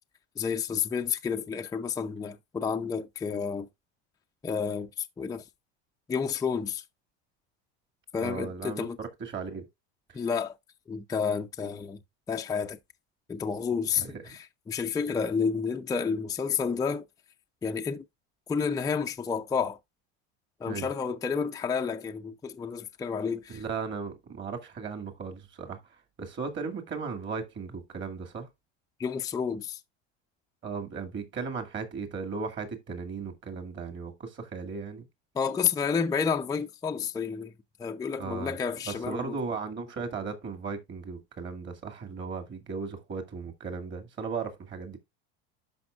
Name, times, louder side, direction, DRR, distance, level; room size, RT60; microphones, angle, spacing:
voice 1, 0.4-3.7 4.4-5.4 6.1-6.8 8.1-9.0 10.1-10.5 10.9-12.0 12.3-12.8 13.3-17.0 17.6-18.0 18.5-19.8 20.6-23.6 29.0-29.8 35.3-37.5 37.8-39.4, left 6 dB, 10° left, 0.5 m, -30 dB
voice 2, 8.2-9.7 10.1-10.2 13.9-14.2 20.7-20.9 23.5-25.8 26.2-28.5 30.6-35.1 38.2-38.6 38.9-45.0, right 5 dB, 35° right, 2.2 m, -36 dB
12.0 x 5.2 x 2.4 m
supercardioid pair, 130°, 32 cm